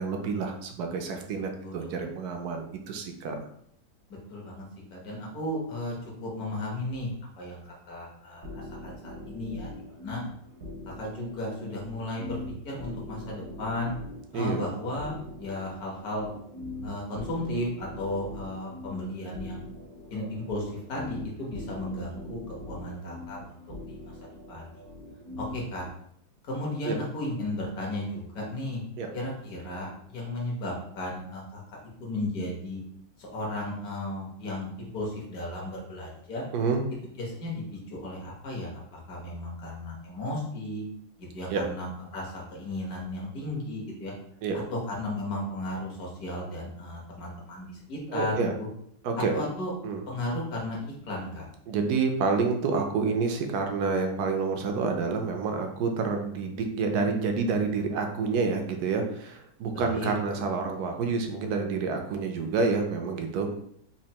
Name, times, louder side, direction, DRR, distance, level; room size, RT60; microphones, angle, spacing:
voice 1, 0.0-3.4 14.3-14.6 26.8-27.0 29.0-29.1 36.5-36.8 41.5-41.6 44.4-44.6 48.1-48.5 49.0-49.3 49.8-50.0 51.7-63.5, right 4 dB, 75° right, 4 dB, 1.1 m, -28 dB
voice 2, 1.3-1.9 4.3-4.7 4.9-5.9 6.2-7.6 7.9-10.2 11.0-12.4 12.6-13.9 14.3-16.3 16.8-19.6 20.1-20.6 20.9-23.4 23.8-24.1 24.5-24.6 25.4-25.9 26.5-28.8 29.1-31.6 32.0-32.8 33.2-36.4 37.2-38.8 39.1-40.9 41.3-44.1 44.9-48.7 49.3-49.7 50.1-51.5 59.7-60.1, left 1 dB, 65° left, -2 dB, 1.6 m, -34 dB
sound 1, 8.4-25.9, left 2 dB, 55° right, 0.8 m, -42 dB
4.3 x 2.6 x 2.8 m, 0.70 s
omnidirectional pair, 1.8 m